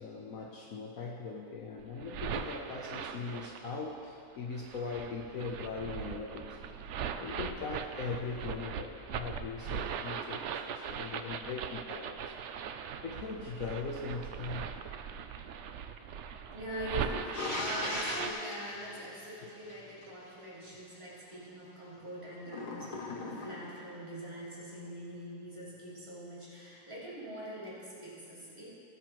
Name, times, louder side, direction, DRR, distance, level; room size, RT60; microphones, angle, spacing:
voice 1, 0.0-6.6 7.1-12.4 13.0-14.7, left 4 dB, 65° left, 0 dB, 1.1 m, -40 dB
sound 1, 1.8-3.8 4.5-18.3, right 7 dB, 70° right, 0.7 m, -40 dB
voice 2, 16.5-28.7, equal, 20° right, -9 dB, 3.1 m, -43 dB
sound 2, 17.3-20.1 22.5-23.9, left 3 dB, 85° left, 1.7 m, -39 dB
19.5 x 8.1 x 3.0 m, 2.6 s
omnidirectional pair, 1.7 m